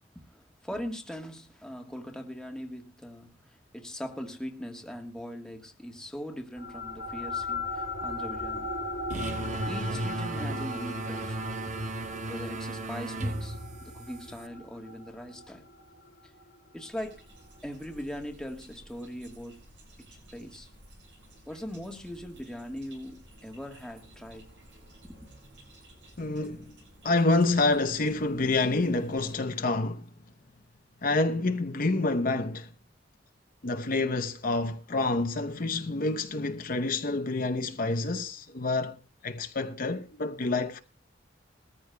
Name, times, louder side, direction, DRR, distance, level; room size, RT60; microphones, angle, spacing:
voice 1, 0.3-8.7 9.7-11.4 12.3-15.6 16.7-17.2 17.6-19.6 20.0-20.7 21.5-24.5 25.0-25.3, equal, 5° left, 1.3 m, -40 dB
sound 1, 6.6-17.4, left 2 dB, 80° left, 1.8 m, -38 dB
sound 2, 9.1-14.5, right 2 dB, 45° right, 0.8 m, -35 dB
sound 3, 16.9-29.3, right 1 dB, 80° right, 7.4 m, -55 dB
voice 2, 26.2-26.7 27.0-30.1 31.0-32.7 33.6-39.0 39.2-40.8, left 2 dB, 50° left, 0.8 m, -28 dB
21.0 x 14.0 x 2.2 m
head